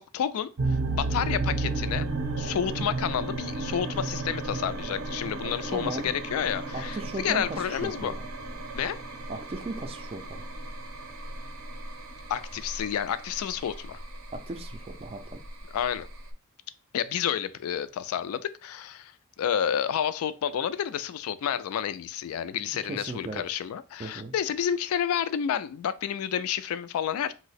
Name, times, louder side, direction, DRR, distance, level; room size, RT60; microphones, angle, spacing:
voice 1, 0.0-2.1 2.4-8.1 8.7-9.0 12.3-14.0 15.7-16.1 16.9-19.1 19.4-27.3, left 9 dB, 80° left, 0.3 m, -30 dB
sound 1, 0.6-16.3, right 2 dB, 80° right, 0.6 m, -34 dB
voice 2, 5.4-6.1 6.7-8.2 9.3-10.5 14.3-15.4 22.7-23.4 24.0-24.3, right 3 dB, 25° right, 0.3 m, -37 dB
2.7 x 2.0 x 4.0 m
head